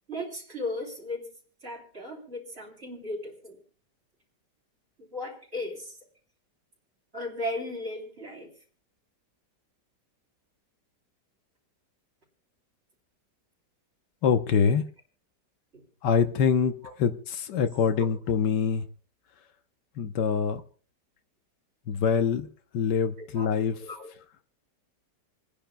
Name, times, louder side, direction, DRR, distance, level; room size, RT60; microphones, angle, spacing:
voice 1, 0.1-1.3 1.6-3.6 5.0-6.0 7.1-8.5 16.8-16.9 18.0-18.1 23.2-23.5 23.8-24.1, left 1 dB, 35° right, 3.7 m, -36 dB
voice 2, 14.2-14.8 16.0-16.7 17.0-18.9 20.0-20.6 21.9-22.5 22.7-23.7, left 6 dB, 80° left, 1.5 m, -24 dB
28.5 x 10.5 x 2.2 m
omnidirectional pair, 1.8 m